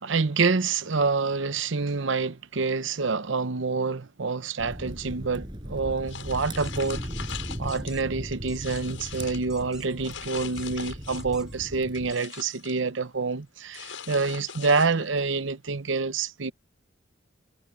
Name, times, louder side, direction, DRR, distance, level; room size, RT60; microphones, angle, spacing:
voice 1, 0.0-7.0 7.6-16.5, right 4 dB, 75° right, 0.8 m, -27 dB
sound 1, 4.6-12.1, equal, 25° right, 5.5 m, -37 dB
sound 2, 6.1-7.9 8.3-9.5 10.0-11.4 11.7-12.8 13.7-15.2, left 7 dB, 85° left, 7.7 m, -41 dB
sound 3, 6.6-7.0 7.7-8.0 8.5-8.8 9.5-10.0 10.4-10.8 11.1-11.6 12.1-12.5, right 1 dB, 5° right, 3.7 m, -50 dB
head